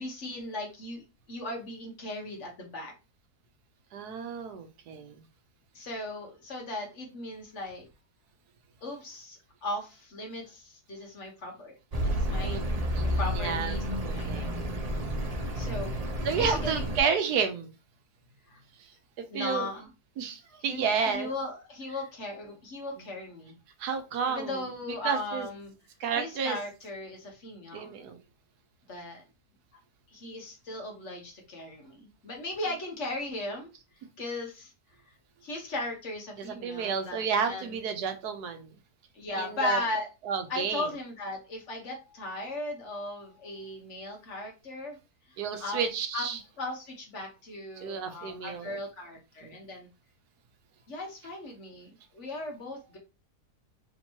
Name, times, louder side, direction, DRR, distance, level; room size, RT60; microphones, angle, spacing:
voice 1, 0.0-2.9 5.7-7.9 8.8-11.8 12.0-14.5 15.5-15.9 16.3-16.9 18.5-18.6 19.3-19.9 20.7-23.5 24.3-25.7 26.2-27.9 28.9-29.2 30.1-33.7 34.2-34.7 35.1-35.2 35.4-37.7 39.1-40.1 40.5-45.0 45.3-45.8 46.1-49.9 50.9-53.0, left 2 dB, 50° left, 1 dB, 1.3 m, -37 dB
voice 2, 3.9-5.2 12.5-12.6 12.9-13.7 14.0-14.5 16.2-17.7 18.8-18.9 19.2-19.7 20.2-21.3 23.8-24.6 25.0-25.5 26.0-26.6 27.7-28.2 36.4-38.7 39.4-39.8 40.3-40.9 45.4-46.4 47.8-48.8 49.4-49.5, right 6 dB, 75° right, 7 dB, 1.2 m, -31 dB
Accelerating revving vroom, 11.9-17.0, equal, 40° right, 0.5 m, -30 dB
3.6 x 2.9 x 4.3 m, 0.29 s
omnidirectional pair, 1.7 m